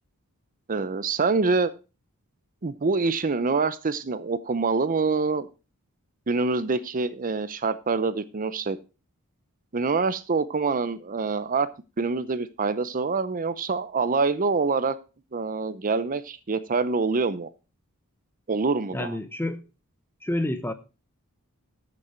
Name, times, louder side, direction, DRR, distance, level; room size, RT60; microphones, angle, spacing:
voice 1, 0.7-1.7 2.6-5.5 6.3-8.8 9.7-11.7 12.0-15.0 15.3-17.5 18.5-19.2, right 4 dB, 40° right, 0.6 m, -25 dB
voice 2, 18.9-19.7 20.2-20.7, left 1 dB, 10° left, 0.9 m, -29 dB
13.0 x 6.6 x 4.5 m
head